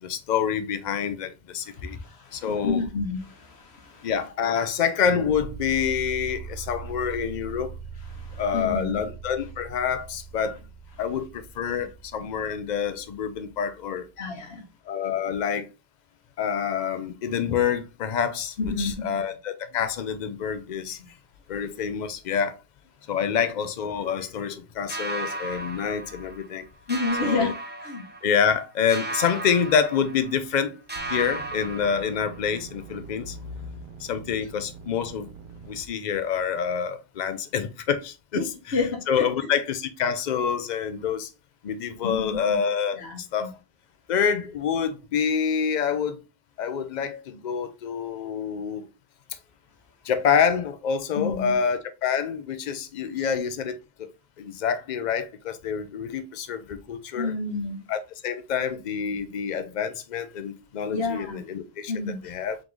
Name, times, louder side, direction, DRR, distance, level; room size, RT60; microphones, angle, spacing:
voice 1, 0.0-2.0 2.3-2.8 4.0-7.7 8.4-10.6 11.0-14.1 14.9-15.7 16.4-21.0 21.5-22.6 23.1-26.7 27.2-27.5 28.2-30.8 31.1-33.5 34.0-35.3 35.6-38.8 39.1-41.3 41.6-43.5 44.1-46.2 46.6-48.9 50.0-54.1 54.4-57.3 57.9-61.9 62.2-62.6, left 7 dB, 55° left, 0.6 m, -27 dB
voice 2, 1.7-4.1 8.1-9.0 14.2-14.6 18.6-19.1 26.9-28.0 38.3-39.3 42.0-42.6 43.0-43.5 51.1-51.5 57.1-57.8 60.9-61.4 61.9-62.4, left 3 dB, 80° left, 1.4 m, -30 dB
sound 1, 5.0-14.0, right 5 dB, 90° right, 0.9 m, -41 dB
sound 2, 24.9-26.6 26.9-28.5 28.9-30.6 30.9-32.6, right 2 dB, 15° right, 0.5 m, -35 dB
sound 3, 31.0-35.8, right 6 dB, 60° right, 0.6 m, -45 dB
3.8 x 3.7 x 3.0 m
omnidirectional pair, 1.1 m